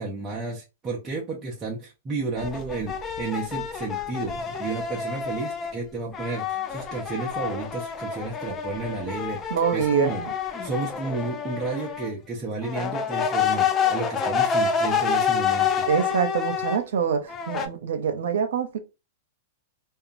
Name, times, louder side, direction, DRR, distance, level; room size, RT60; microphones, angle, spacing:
voice 1, 0.0-4.3 4.6-9.4 9.7-10.2 10.6-15.9, right 3 dB, 20° right, 0.6 m, -32 dB
sound 1, 2.4-5.8 6.1-12.1 12.6-16.8 17.3-17.7, left 7 dB, 25° left, 0.4 m, -28 dB
voice 2, 9.5-10.3 15.9-18.8, right 7 dB, 80° right, 0.6 m, -25 dB
2.8 x 2.2 x 2.5 m
hypercardioid pair, 130°, 0 cm